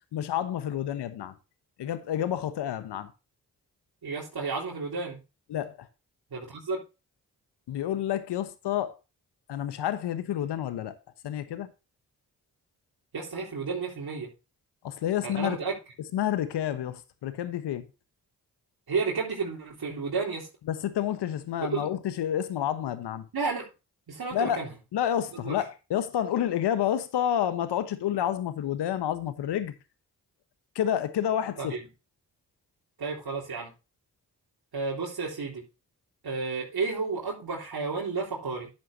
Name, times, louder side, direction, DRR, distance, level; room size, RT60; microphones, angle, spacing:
voice 1, 0.1-1.3 1.8-3.1 5.5-5.7 7.7-8.9 9.5-10.9 11.2-11.7 14.8-15.6 16.1-17.9 20.7-23.2 24.3-24.6 24.9-29.7 30.7-31.8, left 10 dB, 90° left, 1.2 m, -29 dB
voice 2, 4.0-5.2 6.3-6.8 13.1-14.3 15.2-15.7 18.9-20.5 21.6-21.9 23.3-23.7 24.1-24.7 25.3-25.6 31.6-31.8 33.0-33.7 34.7-35.6 36.2-38.7, right 4 dB, 65° right, 4.0 m, -32 dB
12.0 x 7.7 x 2.8 m
supercardioid pair, 40°, 40 cm